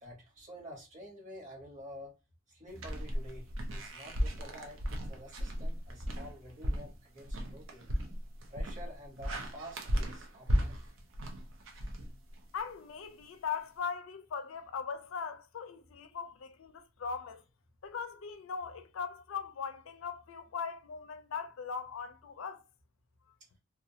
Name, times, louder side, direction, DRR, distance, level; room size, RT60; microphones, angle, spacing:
voice 1, 0.0-2.1 2.5-4.8 5.1-7.9 8.5-10.8, equal, 40° right, 1.0 m, -49 dB
sound 1, 2.8-12.6, equal, 75° right, 0.6 m, -35 dB
voice 2, 12.5-17.4 17.8-22.6, left 6 dB, 85° left, 0.4 m, -40 dB
2.4 x 2.2 x 2.7 m
head